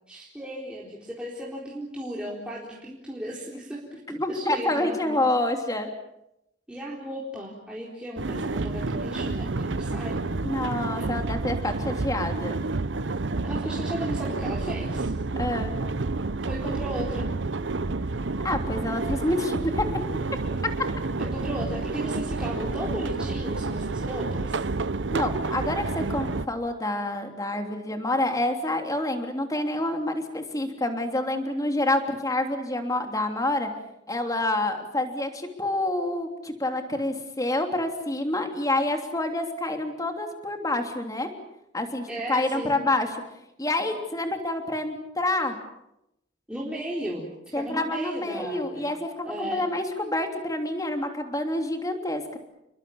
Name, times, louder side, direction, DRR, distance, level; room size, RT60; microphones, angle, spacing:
voice 1, 0.1-5.2 6.7-10.2 11.0-11.3 13.4-15.1 16.5-17.3 21.2-24.6 42.1-42.8 46.5-48.9 49.3-49.7, right 1 dB, 5° right, -5 dB, 4.2 m, -35 dB
voice 2, 4.2-5.9 10.4-12.6 15.3-15.7 18.4-19.9 25.1-33.7 34.1-41.3 41.7-43.1 43.6-45.6 47.5-52.4, left 1 dB, 20° left, 5 dB, 3.2 m, -28 dB
sound 1, 8.2-26.5, right 3 dB, 80° right, 0.9 m, -29 dB
29.5 x 22.5 x 7.2 m, 0.84 s
head